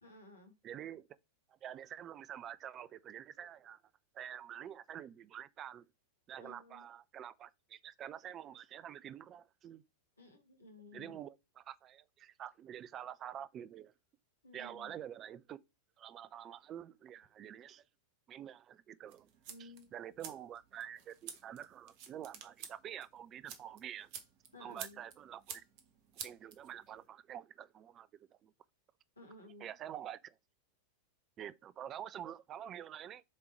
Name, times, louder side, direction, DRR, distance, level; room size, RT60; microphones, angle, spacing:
voice 1, 0.0-0.5 6.4-6.9 10.2-11.2 14.4-15.0 19.5-19.9 24.5-25.0 29.1-29.7, left 2 dB, 75° left, 1.8 m, -55 dB
voice 2, 0.6-1.1 1.6-3.8 4.1-5.9 6.3-9.8 10.9-13.9 14.5-15.6 16.0-17.8 18.3-19.3 19.6-24.1 24.6-25.6 26.2-28.5 29.6-30.3 31.4-33.2, right 10 dB, 30° right, 0.4 m, -47 dB
sound 1, 19.1-27.1, right 7 dB, 45° right, 1.1 m, -51 dB
7.4 x 3.7 x 4.3 m
figure-of-eight pair, 90°, 0 cm